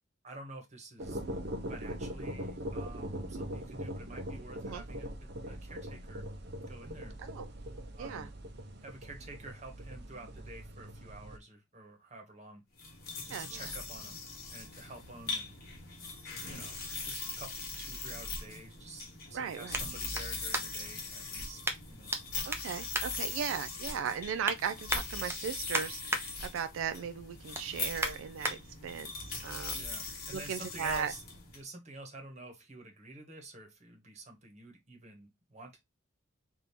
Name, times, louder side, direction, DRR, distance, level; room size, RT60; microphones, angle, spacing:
voice 1, 0.2-1.2 1.7-6.2 6.7-7.2 7.9-8.3 8.8-12.6 13.2-14.2 14.5-15.5 16.5-16.8 17.0-19.0 19.3-21.6 21.9-22.1 29.8-31.2 31.5-35.8, right 2 dB, 35° right, 1.3 m, -49 dB
sound 1, 1.0-11.4, equal, 55° right, 0.8 m, -41 dB
sound 2, 12.7-31.6, left 3 dB, 50° left, 1.4 m, -41 dB
voice 2, 13.3-13.7 19.3-19.8 22.4-31.1, right 7 dB, 85° right, 0.3 m, -37 dB
sound 3, 19.7-21.0 21.6-22.2 22.5-23.8 24.2-24.6 24.9-26.2 26.7-26.9 27.3-28.6 29.1-29.2, right 2 dB, 10° right, 0.6 m, -37 dB
3.5 x 2.7 x 4.2 m
head